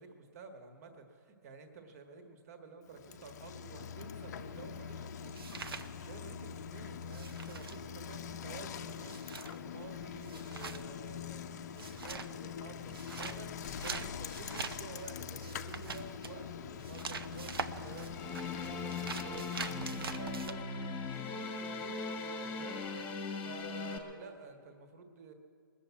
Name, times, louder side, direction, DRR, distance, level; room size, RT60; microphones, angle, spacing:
voice 1, 0.0-25.3, right 4 dB, 40° right, 6 dB, 1.5 m, -51 dB
Bicycle, 2.9-20.4, left 7 dB, 45° left, 0.6 m, -44 dB
sound 1, 4.4-6.6 6.9-20.5, right 5 dB, 85° right, 0.9 m, -44 dB
sound 2, 18.1-24.0, left 4 dB, 15° left, 1.2 m, -39 dB
20.5 x 7.2 x 8.3 m, 2.2 s
hypercardioid pair, 155°, 12 cm